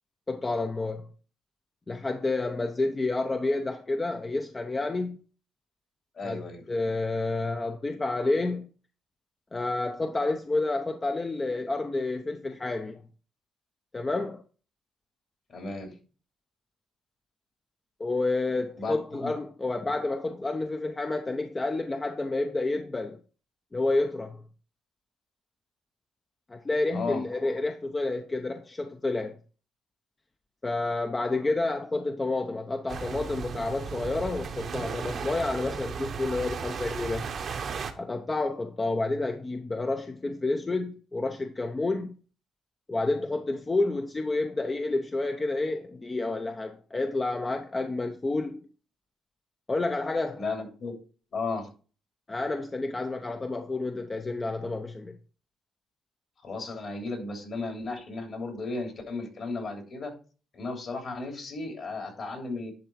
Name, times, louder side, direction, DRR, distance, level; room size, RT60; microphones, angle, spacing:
voice 1, 0.3-1.1 1.9-5.2 6.2-6.4 6.7-8.7 9.5-13.0 13.9-14.4 18.0-23.2 23.7-24.4 26.5-29.3 30.6-37.3 38.0-42.2 42.9-48.7 49.7-50.4 52.3-55.1, left 2 dB, 25° left, 0.7 m, -29 dB
voice 2, 6.2-6.6 15.5-15.9 18.8-19.3 26.9-27.2 50.4-50.9 51.3-51.7 56.4-60.1 60.5-62.7, left 3 dB, 50° left, 3.0 m, -34 dB
sound 1, 32.9-37.9, right 6 dB, 55° right, 0.9 m, -35 dB
10.5 x 3.6 x 4.5 m
cardioid pair, 90°, 0 cm